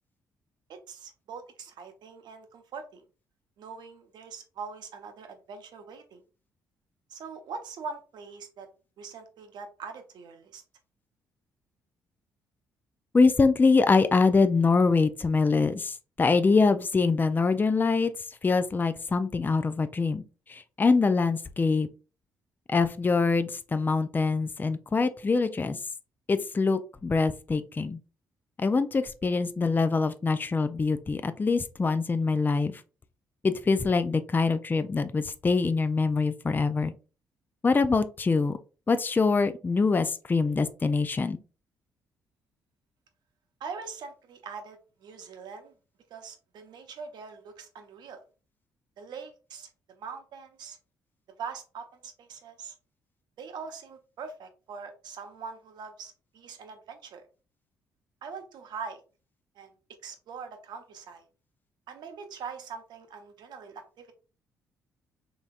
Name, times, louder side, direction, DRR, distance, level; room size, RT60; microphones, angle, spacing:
voice 1, 0.7-3.0 3.6-6.2 7.1-8.7 9.0-10.6 43.6-45.7 46.1-48.2 49.0-50.8 51.4-52.7 53.4-57.3 58.2-59.0 59.5-59.7 60.0-61.3 61.9-64.1, right 5 dB, 65° right, 6 dB, 0.8 m, -42 dB
voice 2, 13.1-18.1 18.4-21.9 22.7-25.8 26.3-28.0 28.6-32.8 33.4-36.9 37.6-38.6 38.9-41.4, left 4 dB, 25° left, 11 dB, 0.4 m, -24 dB
4.0 x 3.3 x 2.4 m, 0.34 s
hypercardioid pair, 50°, 8 cm